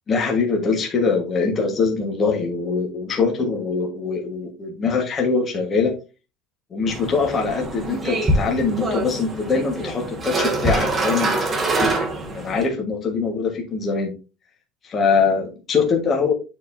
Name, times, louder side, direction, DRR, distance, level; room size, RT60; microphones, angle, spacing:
voice 1, 0.1-5.9 6.7-12.1 12.3-14.1 14.8-16.3, left 4 dB, 20° left, 1 dB, 1.4 m, -23 dB
sound 1, 6.9-12.7, right 2 dB, 15° right, 1.3 m, -25 dB
9.4 x 4.4 x 2.6 m, 0.31 s
cardioid pair, 180°, 0 cm